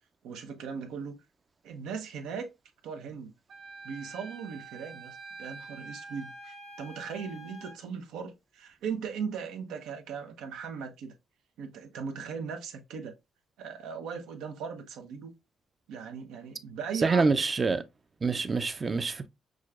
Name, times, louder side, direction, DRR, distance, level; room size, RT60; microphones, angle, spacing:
voice 1, 0.2-1.2 1.6-2.5 2.8-3.3 3.8-11.1 11.6-13.1 13.6-15.3 15.9-17.3, right 6 dB, 90° right, 0.8 m, -38 dB
Wind instrument woodwind instrument, 3.5-7.8, right 2 dB, 60° right, 1.1 m, -46 dB
voice 2, 16.9-17.8 18.2-19.3, right 4 dB, 35° right, 0.5 m, -26 dB
6.2 x 2.2 x 2.3 m
cardioid pair, 90°, 0 cm